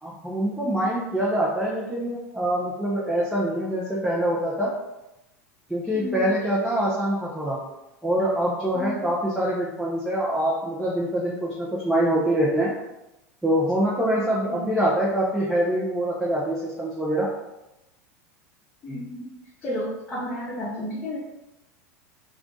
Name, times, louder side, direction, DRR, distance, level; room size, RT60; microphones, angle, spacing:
voice 1, 0.0-4.7 5.7-7.6 8.0-12.7 13.4-17.3, right 1 dB, 5° right, -7 dB, 0.7 m, -24 dB
voice 2, 5.9-6.3 8.7-9.1 14.1-14.7 18.8-19.3 19.6-21.2, left 1 dB, 20° left, -8 dB, 0.9 m, -32 dB
2.4 x 2.4 x 3.8 m, 0.96 s
hypercardioid pair, 90°, 9 cm